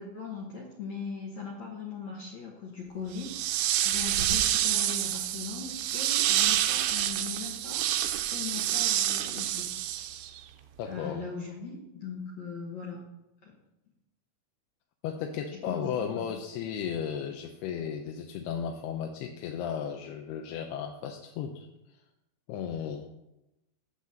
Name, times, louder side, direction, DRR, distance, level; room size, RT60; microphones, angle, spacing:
voice 1, 0.0-9.7 10.0-10.4 10.9-13.0 13.4-13.6 15.7-16.3, left 5 dB, 60° left, -2 dB, 1.9 m, -40 dB
sound 1, 3.2-10.4, right 12 dB, 85° right, 2.7 m, -28 dB
voice 2, 10.8-11.3 15.0-22.0 22.5-23.1, left 7 dB, 80° left, 3 dB, 2.6 m, -35 dB
12.0 x 4.2 x 7.5 m, 0.93 s
omnidirectional pair, 4.7 m